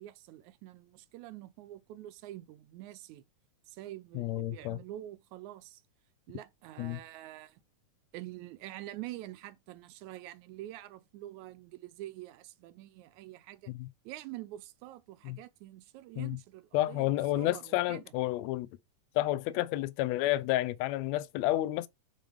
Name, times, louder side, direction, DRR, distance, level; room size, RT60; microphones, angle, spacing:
voice 1, 0.0-3.2 3.7-5.8 6.3-7.6 8.1-13.7 14.1-18.0, right 15 dB, 75° right, 2.0 m, -46 dB
voice 2, 4.1-4.8 6.8-7.0 13.7-13.9 15.2-15.4 16.2-16.4 16.7-18.7 19.1-21.9, left 15 dB, 80° left, 1.6 m, -30 dB
8.5 x 3.7 x 3.5 m
omnidirectional pair, 3.6 m